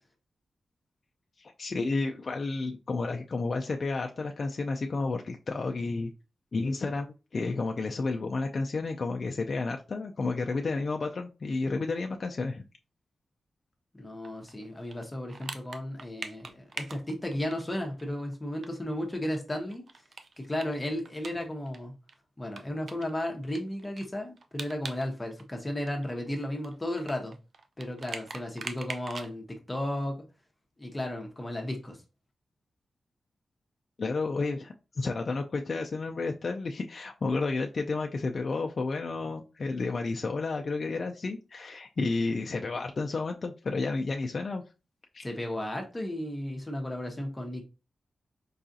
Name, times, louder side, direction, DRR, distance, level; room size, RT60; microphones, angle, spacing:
voice 1, 1.4-6.1 6.5-12.6 34.0-44.6 45.1-45.3, left 3 dB, 55° left, 0.4 m, -31 dB
voice 2, 13.9-19.8 20.4-21.9 22.4-27.4 27.8-30.2 30.8-32.0 45.2-47.6, left 1 dB, 20° left, 0.8 m, -34 dB
sound 1, 14.2-18.0 18.3-18.4 18.6-18.7 19.1-21.8 22.1-22.2 22.6-25.1 25.3-29.3, right 4 dB, 65° right, 0.4 m, -42 dB
4.7 x 2.3 x 2.6 m
cardioid pair, 75°, 0 cm